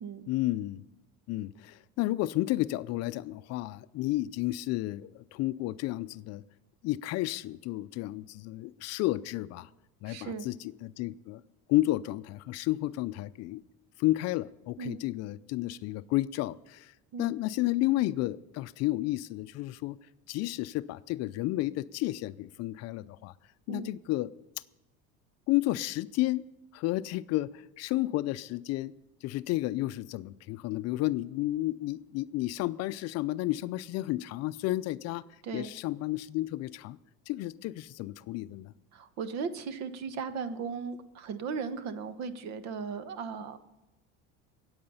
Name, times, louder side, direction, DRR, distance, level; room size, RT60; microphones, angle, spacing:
voice 1, 0.3-0.8 1.3-6.4 6.8-9.7 10.0-11.4 11.7-13.6 14.0-16.9 17.2-20.0 20.3-23.3 23.7-24.3 25.5-26.4 26.7-28.9 29.2-35.2 35.5-37.0 37.3-38.7, left 17 dB, 55° left, 15 dB, 0.5 m, -31 dB
voice 2, 10.0-10.5 14.8-15.0 17.1-17.3 23.7-23.9 35.4-35.7 38.9-43.6, right 5 dB, 60° right, 12 dB, 1.2 m, -37 dB
22.0 x 8.7 x 5.6 m, 1.0 s
cardioid pair, 135°, 31 cm